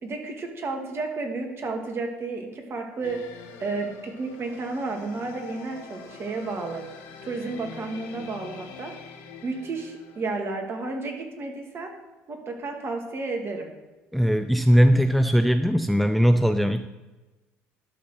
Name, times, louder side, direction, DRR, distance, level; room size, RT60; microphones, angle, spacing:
voice 1, 0.0-3.2 3.6-6.8 7.2-8.9 9.4-11.9 12.3-13.7, right 3 dB, 45° right, 3 dB, 2.2 m, -32 dB
sound 1, 3.0-10.5, left 6 dB, 80° left, 1.4 m, -44 dB
voice 2, 14.1-16.9, equal, ahead, 10 dB, 0.5 m, -20 dB
11.5 x 4.3 x 6.7 m, 1.2 s
hypercardioid pair, 70°, 6 cm